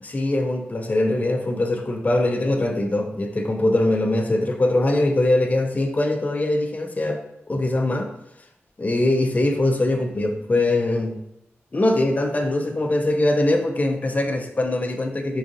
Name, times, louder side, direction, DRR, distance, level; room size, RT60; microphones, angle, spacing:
voice 1, 0.0-7.2 7.5-8.1 8.8-11.2 11.7-15.4, left 2 dB, 35° left, 4 dB, 0.4 m, -22 dB
3.7 x 2.5 x 2.6 m, 0.79 s
cardioid pair, 40°, 5 cm